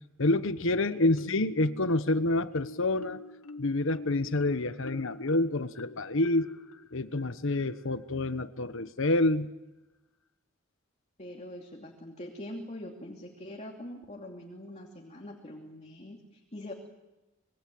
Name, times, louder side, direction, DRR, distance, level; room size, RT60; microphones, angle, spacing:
voice 1, 0.2-3.2 3.6-6.5 6.9-9.5, left 2 dB, 65° left, 12 dB, 1.2 m, -28 dB
Marimba xylophone, 1.1-2.1 2.5-8.0, left 3 dB, 85° left, 1.1 m, -46 dB
voice 2, 11.2-16.7, left 1 dB, 35° left, 1 dB, 2.9 m, -43 dB
26.5 x 22.5 x 7.8 m, 1.0 s
head